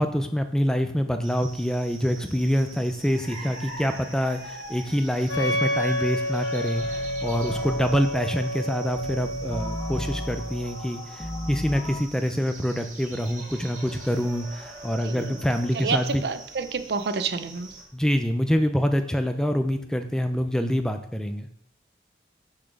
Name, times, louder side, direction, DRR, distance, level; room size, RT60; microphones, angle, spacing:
voice 1, 0.0-16.2 17.9-21.5, equal, 5° left, 7 dB, 0.4 m, -26 dB
sound 1, 1.2-17.8, right 2 dB, 45° right, 1.5 m, -44 dB
Wind instrument woodwind instrument, 5.3-10.9, equal, 85° left, 1.2 m, -30 dB
sound 2, 6.7-12.0, left 1 dB, 25° left, 1.0 m, -35 dB
voice 2, 15.0-15.4 15.7-17.7, right 4 dB, 70° right, 12 dB, 0.5 m, -29 dB
6.3 x 4.1 x 5.9 m, 0.76 s
head